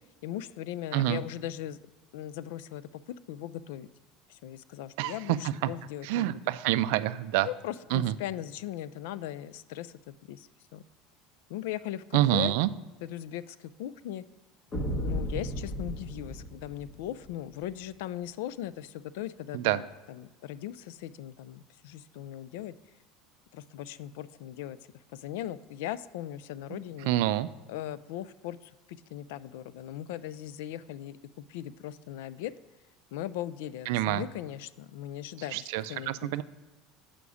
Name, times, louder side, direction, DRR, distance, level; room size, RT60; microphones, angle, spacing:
voice 1, 0.2-1.8 2.1-3.0 3.3-3.9 4.3-6.4 7.4-10.8 11.5-12.5 13.0-14.2 15.0-22.7 23.5-24.8 25.1-27.2 27.7-32.5 33.1-36.4, left 12 dB, 75° left, 17 dB, 0.3 m, -39 dB
voice 2, 5.0-5.4 6.0-7.5 7.9-8.1 12.1-12.7 19.5-19.8 26.7-27.5 33.9-34.2 35.5-36.4, right 14 dB, 65° right, 14 dB, 0.3 m, -27 dB
sound 1, 14.7-17.3, equal, 25° left, 0.8 m, -34 dB
6.9 x 5.1 x 4.8 m, 1.2 s
cardioid pair, 175°, 0 cm